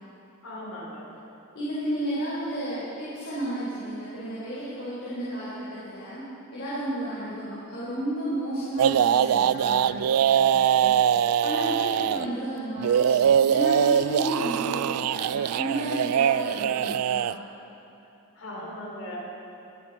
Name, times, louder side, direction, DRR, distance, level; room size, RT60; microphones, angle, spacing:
voice 1, 0.4-1.1 7.2-7.4 12.0-12.3 18.4-19.2, left 1 dB, 85° left, -3 dB, 3.9 m, -39 dB
voice 2, 1.5-6.2 6.5-17.3, right 1 dB, 55° left, -10 dB, 3.9 m, -33 dB
sound 1, 8.8-12.3 12.8-17.3, right 9 dB, 90° right, 0.3 m, -22 dB
22.5 x 10.5 x 4.2 m, 2.8 s
head